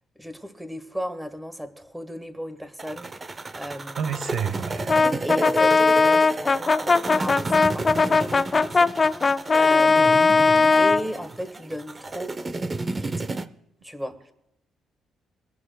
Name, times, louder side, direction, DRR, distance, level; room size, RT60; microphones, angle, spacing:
voice 1, 0.2-4.2 5.2-12.4 12.9-13.3 13.8-14.3, equal, 5° right, 9 dB, 1.6 m, -36 dB
sound 1, 2.8-13.5, right 3 dB, 30° right, 0.7 m, -32 dB
voice 2, 4.0-5.0, right 7 dB, 75° right, 9 dB, 1.1 m, -29 dB
Brass instrument, 4.9-11.1, left 4 dB, 30° left, 0.4 m, -19 dB
23.5 x 11.0 x 2.3 m, 0.83 s
cardioid pair, 90°, 0 cm